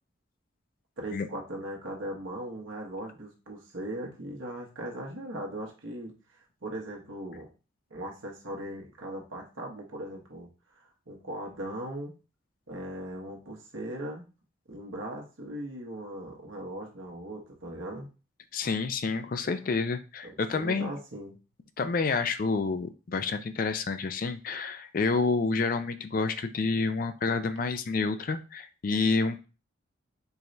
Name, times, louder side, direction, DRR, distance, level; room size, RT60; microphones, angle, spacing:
voice 1, 1.0-6.1 6.6-7.5 7.9-10.5 11.1-12.1 12.7-14.2 14.7-18.1 20.2-21.4, right 1 dB, 80° right, 0 dB, 1.2 m, -39 dB
voice 2, 18.5-20.9 21.8-29.5, left 4 dB, 45° left, 9 dB, 0.4 m, -29 dB
4.6 x 3.2 x 2.7 m, 0.33 s
head